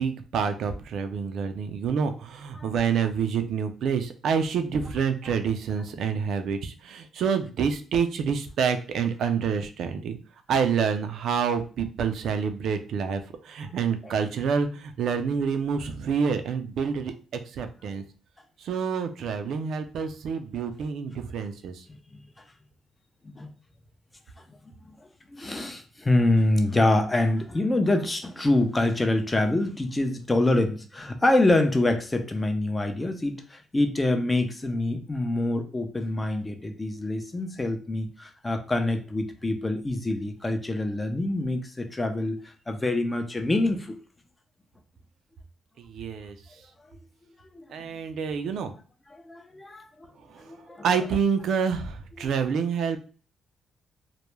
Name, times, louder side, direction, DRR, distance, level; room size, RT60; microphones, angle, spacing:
voice 1, 0.0-10.2 10.5-17.1 17.5-18.0 18.6-21.8 45.8-46.3 47.7-48.7 50.3-50.5 50.8-53.0, right 6 dB, 70° right, 8 dB, 0.4 m, -27 dB
voice 2, 25.3-44.0 47.5-47.7 49.1-50.1 50.4-50.9 52.2-52.3, left 2 dB, 20° left, 6 dB, 0.5 m, -26 dB
2.2 x 2.1 x 3.0 m, 0.38 s
cardioid pair, 90°, 0 cm